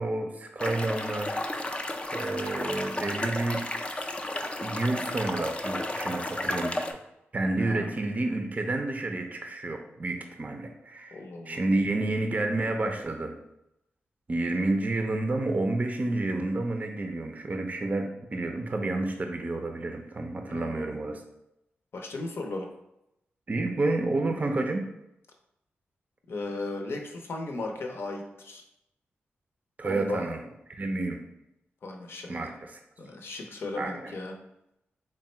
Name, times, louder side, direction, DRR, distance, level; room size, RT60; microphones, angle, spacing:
voice 1, 0.0-1.4 2.1-3.6 4.6-6.8 7.3-13.4 14.3-21.2 23.5-24.9 29.8-30.4 30.7-31.2 32.3-32.8 33.8-34.1, right 2 dB, 35° right, 4 dB, 0.5 m, -30 dB
sound 1, 0.6-6.9, left 1 dB, 25° left, 0.4 m, -33 dB
voice 2, 7.6-7.9 11.1-11.6 20.4-21.0 21.9-22.7 26.3-28.6 29.8-30.3 31.8-32.5 33.0-34.4, left 2 dB, 65° left, 3 dB, 0.6 m, -36 dB
3.5 x 2.1 x 4.2 m, 0.85 s
cardioid pair, 65°, 4 cm